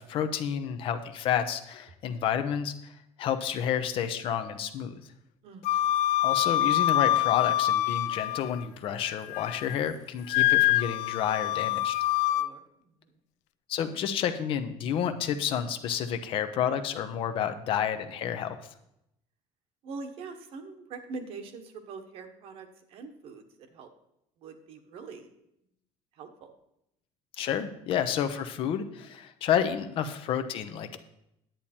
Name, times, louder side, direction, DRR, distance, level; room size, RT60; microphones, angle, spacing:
voice 1, 0.0-5.0 6.2-11.9 13.7-18.6 27.4-31.0, left 9 dB, 45° left, 9 dB, 0.8 m, -30 dB
voice 2, 5.4-5.9 10.3-10.6 12.2-13.1 19.8-23.9 24.4-25.3 26.1-26.5, right 4 dB, 50° right, 7 dB, 1.2 m, -44 dB
Wind instrument woodwind instrument, 5.6-8.6 9.0-9.8 10.3-12.5, left 13 dB, 75° left, 0.5 m, -25 dB
10.5 x 8.7 x 4.3 m, 0.80 s
cardioid pair, 175°, 12 cm